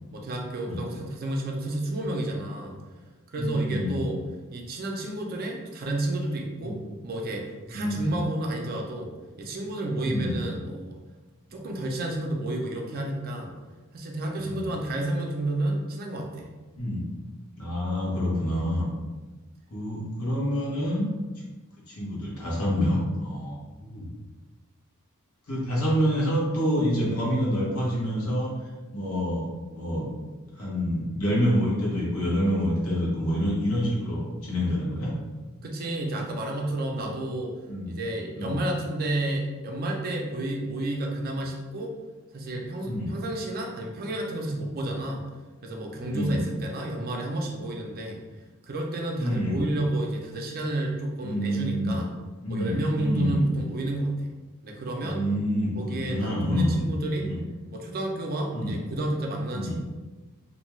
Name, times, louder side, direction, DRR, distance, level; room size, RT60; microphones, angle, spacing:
voice 1, 0.1-2.8 3.3-4.2 4.5-6.8 7.0-11.0 11.5-13.6 13.9-16.5 35.6-37.5 37.9-41.9 42.3-45.2 45.6-48.2 48.7-52.1 52.5-54.3 54.6-55.2 55.8-57.3 57.7-59.7, right 1 dB, 45° right, 0 dB, 0.4 m, -30 dB
voice 2, 3.4-4.0 6.6-6.8 7.7-8.2 10.0-10.4 14.4-14.7 16.8-17.0 17.6-18.9 19.7-21.0 21.9-24.1 25.5-28.5 28.9-30.1 30.5-35.1 37.0-37.1 37.7-37.9 38.3-38.6 42.8-43.1 46.0-46.4 49.2-49.6 51.2-52.0 52.4-53.4 55.0-56.8 57.2-57.4 58.5-58.8 59.5-59.7, equal, 85° left, -5 dB, 1.0 m, -27 dB
2.6 x 2.2 x 3.0 m, 1.2 s
head